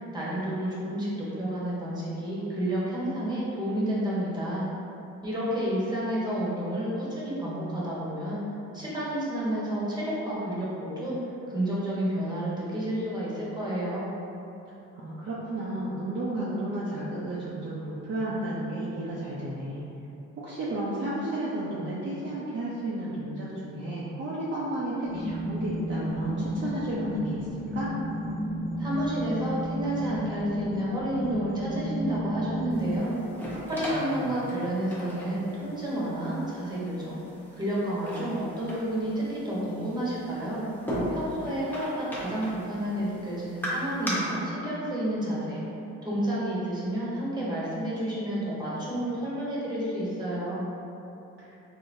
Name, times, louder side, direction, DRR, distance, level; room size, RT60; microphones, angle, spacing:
voice 1, 0.1-4.6 5.2-8.4 8.7-11.2 11.5-14.1 28.8-33.2 33.6-37.2 37.5-40.6 41.1-45.6 46.0-50.6, right 1 dB, 15° right, -8 dB, 1.1 m, -30 dB
voice 2, 15.0-19.9 20.4-27.5 27.7-27.9 33.8-34.4 51.4-51.5, right 1 dB, 40° right, -8 dB, 0.6 m, -33 dB
sound 1, 25.0-33.0, left 1 dB, 85° right, 0.9 m, -32 dB
sound 2, 32.7-44.1, equal, 5° left, 0.8 m, -38 dB
3.9 x 2.8 x 2.6 m, 2.9 s
cardioid pair, 90°, 30 cm